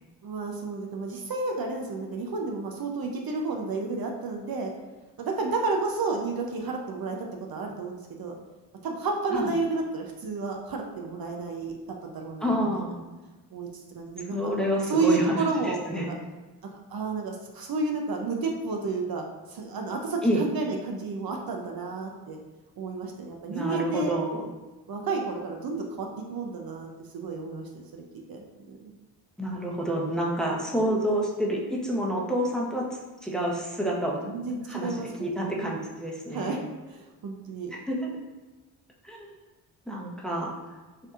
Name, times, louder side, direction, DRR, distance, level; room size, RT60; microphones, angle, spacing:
voice 1, 0.2-4.7 5.2-8.4 8.8-11.8 12.0-12.7 13.5-14.5 14.9-16.2 16.9-22.4 22.8-24.1 24.9-28.0 28.3-28.4 28.7-28.8 34.2-35.1 35.3-35.5 36.3-36.6 36.9-37.7, right 3 dB, 55° right, 1 dB, 0.6 m, -31 dB
voice 2, 12.4-13.0 14.2-16.1 20.2-20.4 23.5-24.5 29.4-34.2 34.7-36.6 37.7-38.0 39.0-39.3 39.9-40.5, equal, ahead, -3 dB, 0.8 m, -28 dB
5.6 x 2.7 x 2.4 m, 1.2 s
cardioid pair, 70°, 43 cm